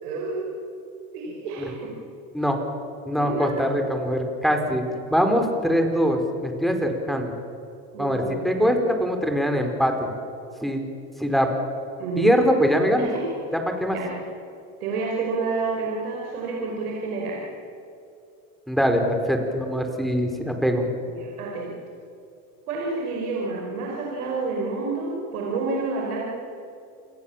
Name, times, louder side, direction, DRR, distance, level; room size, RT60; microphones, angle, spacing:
voice 1, 0.0-0.4 1.1-1.9 3.1-3.6 7.9-8.7 12.0-12.3 13.0-13.2 13.8-14.1 14.8-17.4 21.0-21.8 22.7-26.3, right 3 dB, 85° right, -2 dB, 5.4 m, -29 dB
voice 2, 3.1-4.8 5.1-7.3 8.0-10.1 10.6-10.8 11.2-11.5 12.2-13.1 13.8-14.0 18.7-20.9, equal, ahead, 4 dB, 4.6 m, -22 dB
29.0 x 21.5 x 7.4 m, 2.6 s
hypercardioid pair, 90°, 43 cm